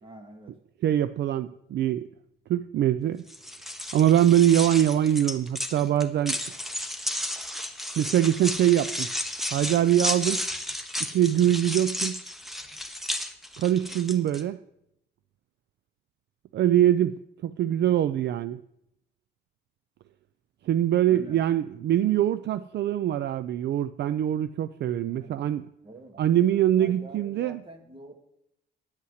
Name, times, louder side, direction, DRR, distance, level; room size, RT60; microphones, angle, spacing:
voice 1, 0.0-0.6 21.1-21.4 25.0-25.5 25.8-26.2 26.8-28.2, right 1 dB, 25° right, 4 dB, 1.9 m, -46 dB
voice 2, 0.8-2.1 2.5-3.2 3.9-6.4 8.0-9.1 9.5-10.4 11.1-12.2 13.6-14.6 16.5-18.6 20.7-25.6 26.2-27.6, right 11 dB, 60° right, 14 dB, 0.4 m, -23 dB
sound 1, 3.3-14.4, left 1 dB, ahead, 1.0 m, -33 dB
10.0 x 5.6 x 8.0 m, 0.81 s
cardioid pair, 90°, 20 cm